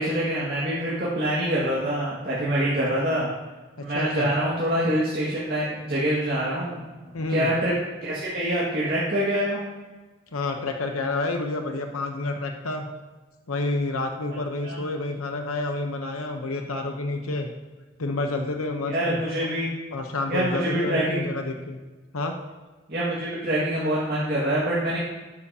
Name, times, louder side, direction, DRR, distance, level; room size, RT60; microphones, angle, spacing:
voice 1, 0.0-3.3 3.8-6.8 7.3-7.7 8.0-9.6 14.6-14.8 18.9-19.7 20.3-21.3 22.9-25.0, right 1 dB, 45° right, -7 dB, 2.0 m, -25 dB
voice 2, 3.8-4.3 7.1-7.5 10.3-12.9 13.5-17.5 18.0-19.5 19.9-21.8 22.1-22.3, left 2 dB, 90° left, 4 dB, 0.9 m, -29 dB
12.0 x 9.5 x 2.9 m, 1.3 s
head